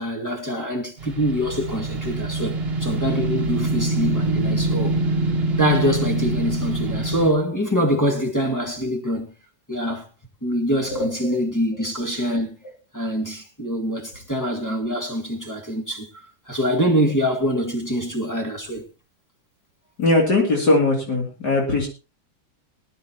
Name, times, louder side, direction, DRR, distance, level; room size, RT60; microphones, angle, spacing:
voice 1, 0.0-5.0 5.6-9.3 9.7-10.1 10.4-12.6 12.9-18.8, equal, 10° left, 1.6 m, -24 dB
sound 1, 1.0-7.3, right 2 dB, 35° right, 1.4 m, -24 dB
voice 2, 10.9-11.4 20.0-21.9, left 2 dB, 55° left, 3.2 m, -20 dB
22.0 x 11.0 x 2.9 m
omnidirectional pair, 2.1 m